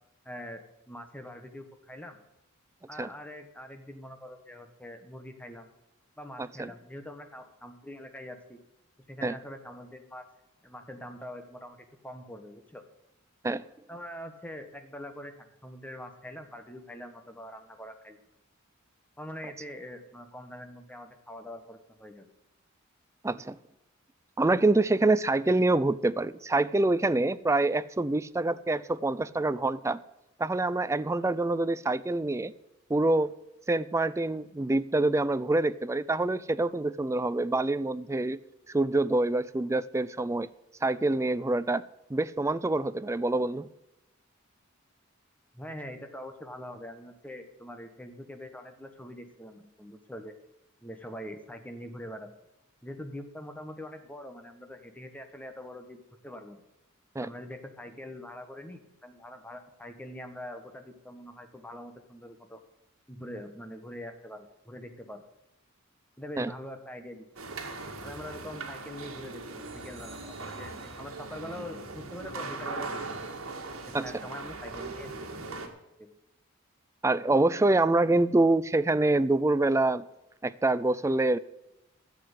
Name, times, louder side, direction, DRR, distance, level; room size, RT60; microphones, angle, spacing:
voice 1, 0.2-2.2 2.9-5.7 6.2-8.6 9.1-10.2 10.6-11.8 12.0-12.8 13.9-18.2 19.2-22.3 45.5-50.3 50.8-52.3 52.8-56.6 57.2-62.6 63.1-65.2 66.2-67.3 68.0-73.3 73.9-75.4 76.0-76.1, left 1 dB, 5° left, 6 dB, 1.3 m, -44 dB
voice 2, 6.4-6.7 9.2-9.4 13.4-13.6 23.2-23.6 24.4-30.0 30.4-32.5 32.9-33.3 33.7-38.4 38.7-40.5 40.8-41.8 42.1-43.7 57.2-57.3 66.4-66.5 73.9-74.1 77.0-80.0 80.4-81.4, right 2 dB, 15° right, 16 dB, 0.4 m, -26 dB
sound 1, 67.4-75.7, right 3 dB, 70° right, 2.0 m, -39 dB
11.5 x 7.9 x 8.2 m, 0.92 s
head